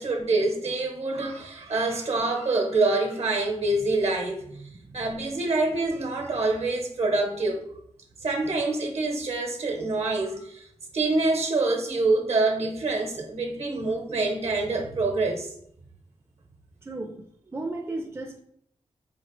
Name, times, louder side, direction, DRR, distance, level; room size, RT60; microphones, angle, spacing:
voice 1, 0.0-4.7 4.9-7.6 8.2-10.7 10.9-15.5, right 2 dB, 65° right, 2 dB, 0.9 m, -26 dB
voice 2, 4.7-5.1 9.8-9.9 16.8-17.2 17.5-18.4, right 2 dB, 20° right, 3 dB, 0.4 m, -35 dB
4.3 x 2.5 x 3.0 m, 0.69 s
cardioid pair, 65°, 12 cm